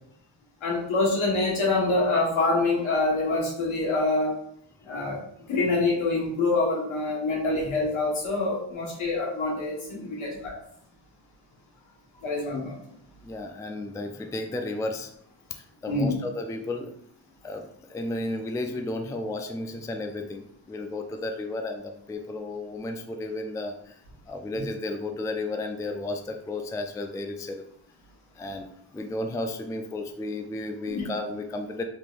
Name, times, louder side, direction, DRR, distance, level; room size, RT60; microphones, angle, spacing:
voice 1, 0.6-4.4 4.8-5.2 5.5-10.6 12.2-12.8 15.9-16.1 30.9-31.0, left 2 dB, 80° left, -3 dB, 1.4 m, -25 dB
voice 2, 13.2-15.1 15.5-16.9 17.4-24.0 24.3-27.6 28.4-31.8, left 2 dB, 10° left, 5 dB, 0.3 m, -33 dB
3.8 x 3.1 x 2.4 m, 0.70 s
cardioid pair, 60°, 48 cm